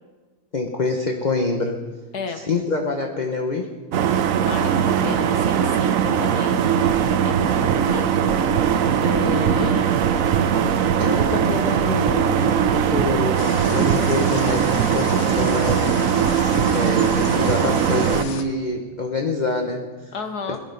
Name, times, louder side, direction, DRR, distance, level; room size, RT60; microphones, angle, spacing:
voice 1, 0.5-1.8 2.4-3.7 11.0-13.4 13.7-16.0 16.7-20.1 20.5-20.6, left 3 dB, 30° left, 2 dB, 0.9 m, -26 dB
voice 2, 2.1-2.4 4.3-6.6 7.2-8.3 9.0-10.1 20.1-20.6, left 5 dB, 55° left, 6 dB, 1.5 m, -32 dB
sound 1, 3.9-18.2, right 8 dB, 65° right, 0.8 m, -20 dB
sound 2, 6.8-18.3, right 8 dB, 85° right, 1.6 m, -32 dB
sound 3, 13.4-18.4, left 8 dB, 75° left, 1.6 m, -35 dB
19.5 x 11.5 x 5.4 m, 1.3 s
omnidirectional pair, 2.2 m